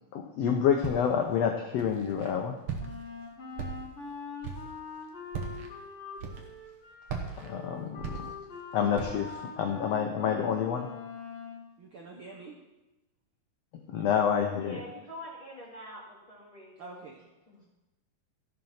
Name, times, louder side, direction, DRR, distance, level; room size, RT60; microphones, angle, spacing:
voice 1, 0.1-2.6 7.4-8.3 8.7-10.9 13.7-14.8, left 7 dB, 85° left, 3 dB, 1.4 m, -28 dB
Walk footsteps, 0.8-1.3 1.8-2.3 2.7-3.1 3.5-4.1 4.4-4.8 5.3-5.7 6.2-6.7 7.1-8.6 8.9-9.3, right 6 dB, 55° right, 1.6 m, -38 dB
Wind instrument woodwind instrument, 2.8-11.6, left 5 dB, 45° left, 2.8 m, -43 dB
voice 2, 11.8-12.6 16.8-17.3, right 3 dB, 75° right, -1 dB, 1.2 m, -46 dB
voice 3, 14.5-17.0 17.5-17.6, left 1 dB, 15° left, -5 dB, 1.6 m, -45 dB
14.0 x 6.0 x 5.7 m, 1.0 s
omnidirectional pair, 3.9 m